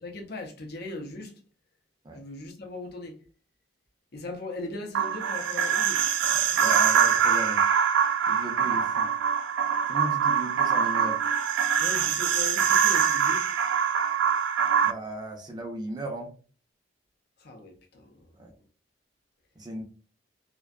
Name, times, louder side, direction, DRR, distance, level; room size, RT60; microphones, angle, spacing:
voice 1, 0.0-1.3 2.1-3.1 4.1-6.0 11.8-13.4 17.4-18.0, left 2 dB, 55° left, 0.6 m, -38 dB
sound 1, 4.9-14.9, right 7 dB, 80° right, 0.3 m, -24 dB
voice 2, 6.2-7.6 8.3-9.1 9.9-11.2 14.8-16.3 18.4-18.5 19.6-19.8, right 1 dB, 20° right, 0.5 m, -36 dB
2.5 x 2.2 x 2.3 m
head